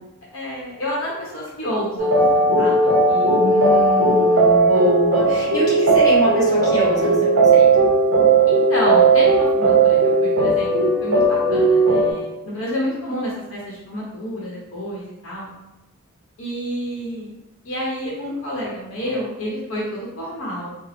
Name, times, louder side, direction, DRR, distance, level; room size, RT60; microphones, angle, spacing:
voice 1, 0.3-2.8 3.1-3.3 8.5-15.5 16.4-17.3 17.6-20.7, equal, 65° left, -5 dB, 0.8 m, -29 dB
sound 1, 2.0-12.1, right 3 dB, 55° right, 0.7 m, -16 dB
voice 2, 3.1-7.9, equal, 20° left, -8 dB, 1.5 m, -23 dB
3.7 x 2.0 x 3.4 m, 0.91 s
head